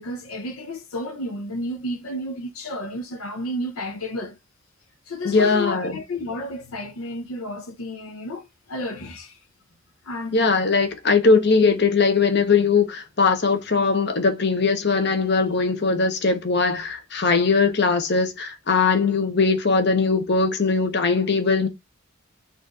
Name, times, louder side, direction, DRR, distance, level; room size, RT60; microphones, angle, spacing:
voice 1, 0.0-4.4 5.1-9.4 10.0-10.4, left 1 dB, 90° left, 0.8 m, -32 dB
voice 2, 5.2-6.0 10.3-21.7, left 4 dB, 50° left, 1.0 m, -20 dB
4.2 x 2.6 x 4.7 m
head